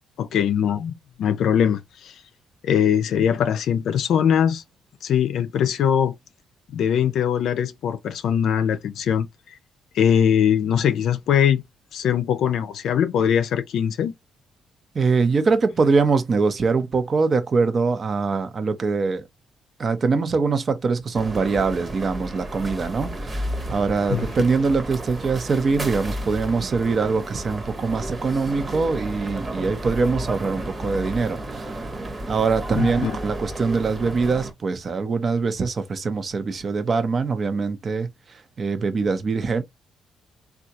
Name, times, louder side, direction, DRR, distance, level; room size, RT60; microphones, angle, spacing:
voice 1, 0.2-2.1 2.6-4.6 5.0-6.1 6.7-9.3 9.9-11.6 11.9-14.1 24.1-24.2 32.7-33.1, left 8 dB, 75° left, 0.5 m, -21 dB
voice 2, 14.9-19.3 19.8-31.9 32.3-39.6, right 4 dB, 40° right, 0.7 m, -23 dB
sound 1, 21.1-34.5, right 1 dB, 25° right, 1.0 m, -32 dB
3.6 x 2.4 x 2.8 m
cardioid pair, 90°, 0 cm